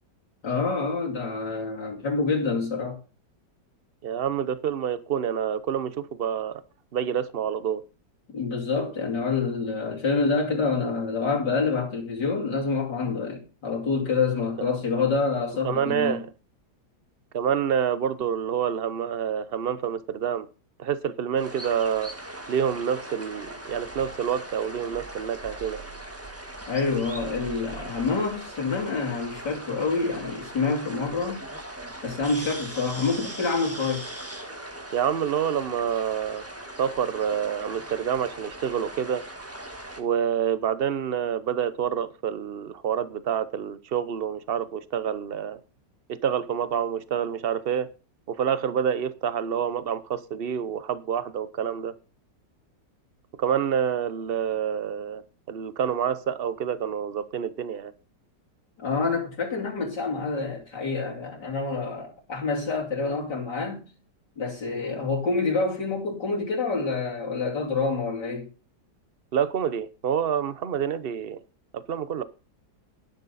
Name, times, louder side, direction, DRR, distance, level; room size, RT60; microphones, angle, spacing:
voice 1, 0.4-3.0 8.3-16.2 26.7-31.5 32.0-34.1 58.8-63.9 64.4-68.5, left 4 dB, 70° left, 3.5 m, -27 dB
voice 2, 4.0-6.6 6.9-7.8 15.6-16.3 17.3-20.5 20.8-22.1 22.5-25.8 34.9-36.4 36.8-39.2 40.0-45.6 46.1-47.9 48.3-51.9 53.4-55.2 55.5-57.9 69.3-71.4 71.7-72.2, right 8 dB, 45° right, 0.8 m, -27 dB
sound 1, 21.4-40.0, right 1 dB, 10° right, 1.5 m, -39 dB
12.0 x 10.5 x 4.1 m
omnidirectional pair, 1.9 m